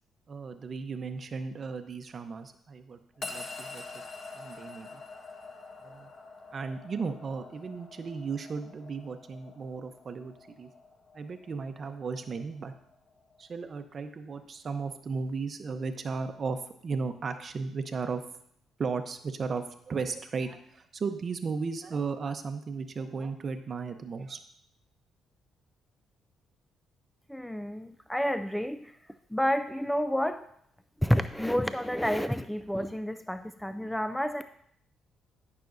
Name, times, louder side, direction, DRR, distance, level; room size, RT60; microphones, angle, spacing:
voice 1, 0.3-3.8 4.3-5.0 5.8-6.1 6.5-10.7 11.1-12.7 13.4-18.2 18.8-24.4, right 4 dB, 45° right, 8 dB, 0.7 m, -35 dB
sound 1, 3.2-13.6, left 3 dB, 45° left, 1.2 m, -46 dB
voice 2, 27.3-28.9 29.3-30.4 31.0-34.4, equal, 5° left, 10 dB, 0.3 m, -29 dB
15.0 x 5.9 x 2.6 m, 0.69 s
cardioid pair, 90°, 0 cm